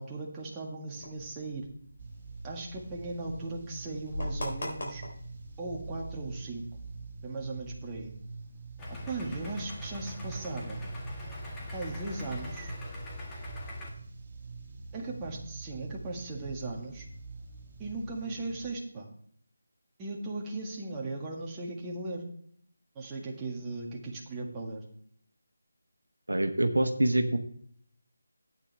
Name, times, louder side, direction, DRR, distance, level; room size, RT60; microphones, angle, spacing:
voice 1, 0.0-1.7 2.4-5.0 5.6-6.6 7.2-8.1 9.1-10.8 11.7-12.7 14.9-17.1 17.8-19.1 20.0-22.2 23.0-24.9, right 2 dB, 15° right, -2 dB, 1.8 m, -37 dB
sound 1, 1.0-7.1, left 1 dB, 55° left, 3.7 m, -42 dB
sound 2, 2.0-18.7, right 3 dB, 35° right, 1.4 m, -45 dB
Idling, 8.8-13.9, left 1 dB, 10° left, 1.7 m, -41 dB
voice 2, 26.3-27.4, right 1 dB, 80° right, 7 dB, 1.2 m, -25 dB
13.0 x 9.0 x 3.4 m, 0.62 s
figure-of-eight pair, 160°, 0 cm